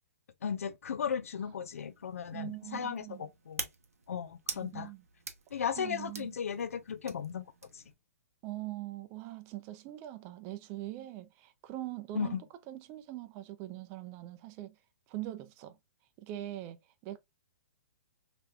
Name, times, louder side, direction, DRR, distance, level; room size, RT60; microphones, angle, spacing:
voice 1, 0.4-3.7 4.1-4.9 5.5-7.4 7.7-7.8 12.1-12.4, left 7 dB, 75° left, 0.4 m, -36 dB
sound 1, 1.7-8.0, right 4 dB, 85° right, 0.7 m, -46 dB
voice 2, 2.3-3.3 4.5-5.0 5.8-6.3 8.4-14.8 15.1-15.8 16.2-17.2, right 15 dB, 30° right, 0.5 m, -42 dB
3.2 x 3.0 x 2.2 m
hypercardioid pair, 125°, 8 cm